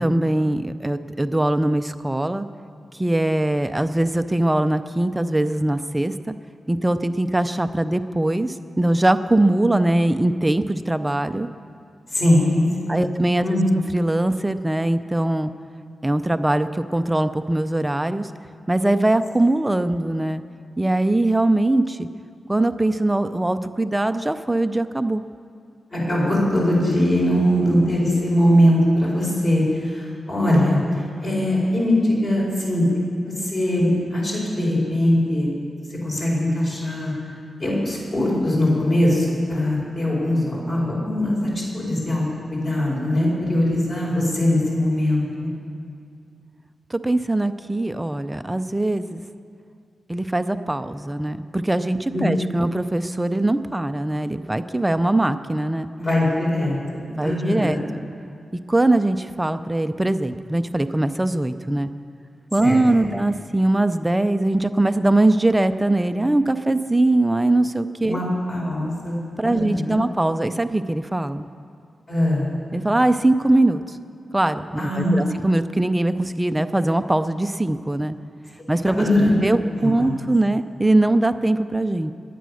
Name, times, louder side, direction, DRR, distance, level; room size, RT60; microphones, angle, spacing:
voice 1, 0.0-2.5 3.0-6.3 6.7-11.5 12.9-13.6 13.9-15.5 16.0-18.3 18.7-20.4 20.8-22.1 22.5-25.2 46.9-49.2 50.1-55.9 57.1-57.8 58.7-61.9 62.5-68.2 69.4-71.5 72.7-74.0 74.3-78.2 78.7-79.1 79.4-82.1, right 1 dB, 10° right, 10 dB, 0.5 m, -21 dB
voice 2, 12.1-12.6 13.4-13.8 25.9-30.8 31.2-32.9 33.2-35.5 36.0-37.1 37.6-45.5 52.1-52.3 56.0-57.8 62.6-63.1 68.0-70.0 72.1-72.5 74.8-75.3 78.8-79.3 79.8-80.1, left 1 dB, 35° left, -4 dB, 4.8 m, -21 dB
21.5 x 9.3 x 6.4 m, 2.4 s
wide cardioid pair, 160°, 0 cm